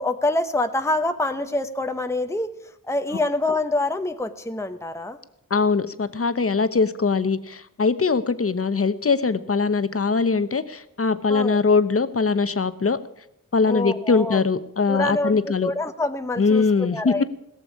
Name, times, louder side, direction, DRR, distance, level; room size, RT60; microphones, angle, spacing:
voice 1, 0.0-2.5 2.8-5.2 11.3-11.6 13.7-14.4 14.9-17.2, left 2 dB, 10° left, 8 dB, 0.9 m, -26 dB
voice 2, 5.5-13.0 13.5-15.7 16.4-17.2, left 4 dB, 40° left, 13 dB, 1.0 m, -21 dB
17.5 x 6.9 x 9.6 m, 0.81 s
cardioid pair, 50°, 34 cm